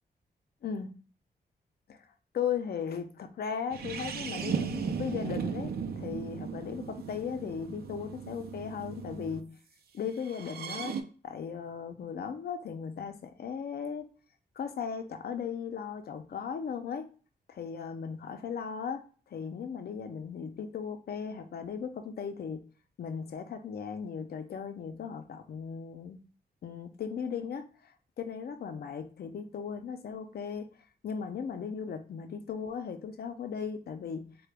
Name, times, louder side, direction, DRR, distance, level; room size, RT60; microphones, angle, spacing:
voice 1, 2.3-9.6 9.9-10.9 11.2-14.1 14.6-17.1 17.5-19.0 19.3-22.7 23.0-26.2 26.6-27.9 28.2-30.7 31.0-34.4, left 7 dB, 65° left, 7 dB, 0.5 m, -37 dB
sound 1, 3.7-9.4 10.2-11.0, right 6 dB, 65° right, 0.5 m, -36 dB
3.8 x 2.2 x 3.3 m, 0.38 s
cardioid pair, 95°, 17 cm